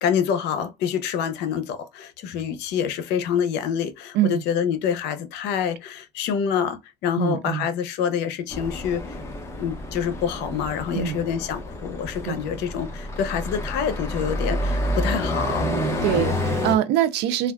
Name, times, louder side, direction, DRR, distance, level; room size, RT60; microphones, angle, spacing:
voice 1, 0.0-9.2 9.6-15.7 16.1-16.4, left 8 dB, 90° left, 0.6 m, -26 dB
voice 2, 7.2-7.7 10.9-11.2 12.3-12.4 15.6-17.5, right 10 dB, 85° right, 0.5 m, -24 dB
sound 1, 8.5-16.7, left 1 dB, 15° left, 0.9 m, -29 dB
3.4 x 2.3 x 2.2 m
cardioid pair, 110°, 17 cm